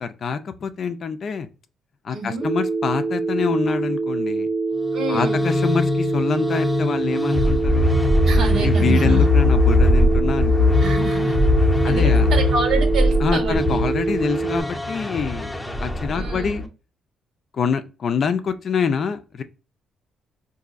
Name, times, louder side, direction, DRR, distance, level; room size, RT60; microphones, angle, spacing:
voice 1, 0.0-1.5 2.0-4.5 5.1-7.9 8.6-10.9 11.8-12.3 13.2-16.6 17.5-19.4, left 6 dB, 55° left, 0.4 m, -25 dB
voice 2, 2.1-2.5 4.9-5.4 8.3-9.3 10.8-11.4 11.8-13.6 16.1-16.6, right 3 dB, 75° right, 1.1 m, -27 dB
Telephone, 2.4-14.6, right 3 dB, 30° right, 0.5 m, -25 dB
sound 1, 4.8-16.6, left 2 dB, 5° left, 0.7 m, -20 dB
3.9 x 2.6 x 2.4 m
cardioid pair, 90°, 0 cm